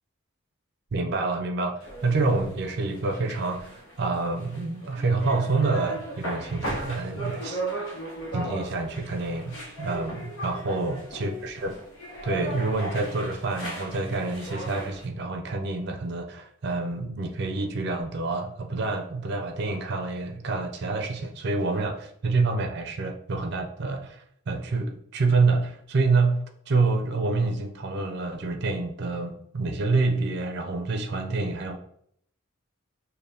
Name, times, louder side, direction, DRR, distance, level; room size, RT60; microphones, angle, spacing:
voice 1, 0.9-7.6 8.3-10.2 10.4-11.8 12.2-31.8, right 3 dB, 50° right, 4 dB, 0.4 m, -27 dB
sound 1, 1.8-15.1, right 2 dB, 75° left, 0.8 m, -37 dB
5.1 x 2.1 x 2.7 m, 0.67 s
head